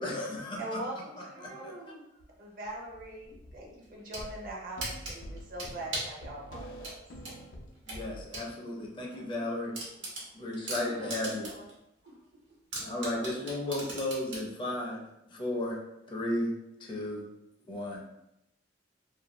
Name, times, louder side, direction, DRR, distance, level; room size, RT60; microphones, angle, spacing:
voice 1, 0.0-0.8 7.9-9.7 10.3-11.5 12.8-15.0 15.3-15.8 16.1-16.5 16.8-17.3 17.7-18.1, left 1 dB, 25° left, -1 dB, 0.5 m, -34 dB
voice 2, 0.6-1.7 2.4-7.0, right 1 dB, 50° right, -2 dB, 0.6 m, -41 dB
voice 3, 1.3-2.0 8.4-8.6 8.9-9.3 9.9-10.3 10.8-11.7 12.0-12.4 12.7-13.3, right 1 dB, 65° right, -5 dB, 1.1 m, -50 dB
sound 1, 2.2-2.3 2.7-3.7 4.2-8.2, equal, 80° left, 0.5 m, -47 dB
sound 2, 3.8-4.3 4.8-6.2 6.8-8.5 8.9-9.0 9.3-9.4 9.7-11.7 12.1-12.2 12.7-14.5, right 2 dB, 85° right, 1.0 m, -38 dB
2.5 x 2.2 x 2.9 m, 0.86 s
head